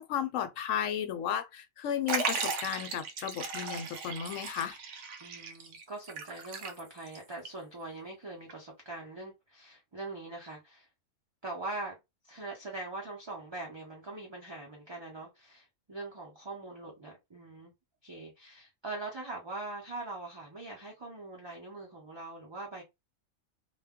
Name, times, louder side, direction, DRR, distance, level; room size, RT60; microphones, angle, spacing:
voice 1, 0.0-4.8, left 9 dB, 75° left, 0.9 m, -34 dB
Liquid, 2.1-7.2 7.5-7.6 8.5-8.6, right 4 dB, 70° right, 0.9 m, -36 dB
voice 2, 5.2-10.9 11.4-12.0 12.2-17.7 18.0-22.8, right 2 dB, 35° right, 0.5 m, -42 dB
2.3 x 2.2 x 3.5 m
omnidirectional pair, 1.4 m